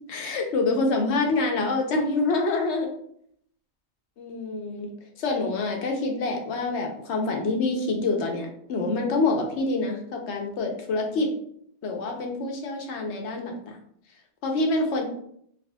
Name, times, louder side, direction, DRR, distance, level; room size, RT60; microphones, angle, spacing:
voice 1, 0.1-2.9 4.2-4.9 5.2-11.3 11.8-13.6 14.4-15.0, left 3 dB, 80° left, 2 dB, 1.0 m, -26 dB
4.0 x 2.4 x 2.2 m, 0.68 s
omnidirectional pair, 1.1 m